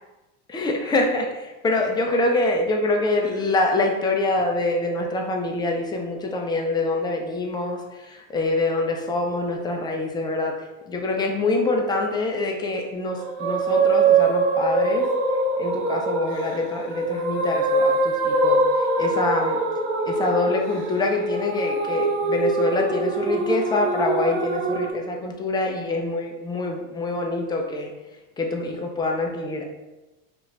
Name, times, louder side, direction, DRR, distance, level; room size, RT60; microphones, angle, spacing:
voice 1, 0.5-15.1 15.6-18.6 19.0-19.6 20.1-27.9 28.4-29.7, left 2 dB, 10° left, 2 dB, 0.4 m, -25 dB
sound 1, 13.2-24.9, right 3 dB, 70° right, 0.7 m, -23 dB
2.9 x 2.4 x 3.1 m, 1.1 s
supercardioid pair, 110°, 35 cm